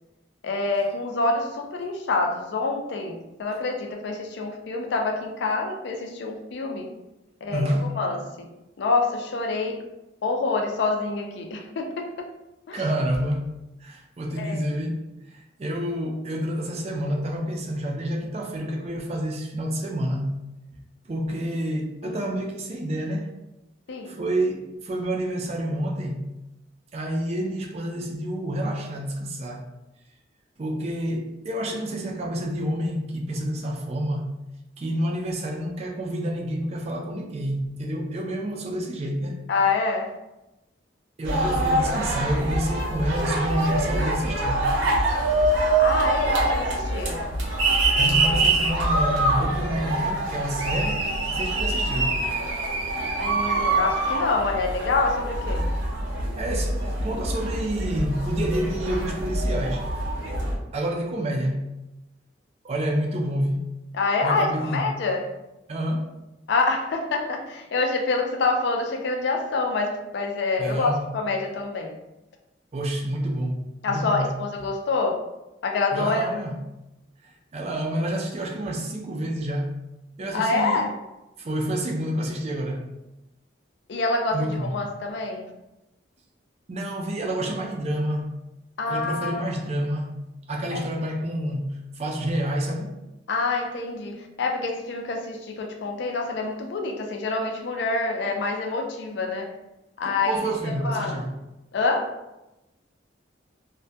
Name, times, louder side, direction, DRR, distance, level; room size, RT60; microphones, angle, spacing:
voice 1, 0.4-6.9 7.4-8.5 8.8-9.8 10.2-12.3 12.7-12.8 14.4-14.6 22.0-22.3 23.9-24.1 39.5-40.2 45.8-47.2 53.2-55.7 63.9-65.3 66.5-72.0 73.8-75.3 75.6-76.3 80.3-80.9 83.9-85.5 88.8-89.4 90.7-90.8 93.3-99.5 100.0-101.2 101.7-102.1, left 3 dB, 65° left, 2 dB, 0.4 m, -26 dB
voice 2, 7.5-7.9 12.7-15.0 15.3-20.3 20.7-20.8 21.1-23.3 24.0-26.2 26.9-29.7 30.6-34.3 34.8-39.4 41.2-44.7 48.0-52.2 56.4-59.9 60.7-61.7 62.6-63.7 64.2-64.8 65.7-66.1 70.6-71.1 72.7-74.4 75.9-76.6 77.2-79.7 80.2-80.8 81.4-82.8 84.3-84.8 86.7-88.4 88.9-90.2 90.5-93.0 100.0-101.3, right 1 dB, 35° right, 0 dB, 0.3 m, -28 dB
sound 1, 41.2-60.5, right 2 dB, 85° right, 0.6 m, -25 dB
2.1 x 2.1 x 2.7 m, 0.96 s
head